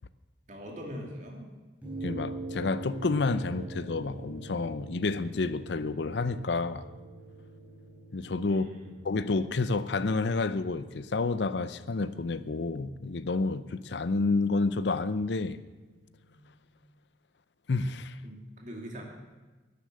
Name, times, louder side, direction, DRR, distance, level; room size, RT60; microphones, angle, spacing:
voice 1, 0.5-1.5 8.4-9.1 18.2-19.0, equal, 40° right, 2.5 m, -42 dB
sound 1, 1.8-16.4, right 2 dB, 10° right, 4.6 m, -45 dB
voice 2, 2.0-6.9 8.1-8.7 9.0-15.6 17.7-18.2, left 3 dB, 75° left, 0.6 m, -29 dB
11.5 x 10.5 x 7.6 m
head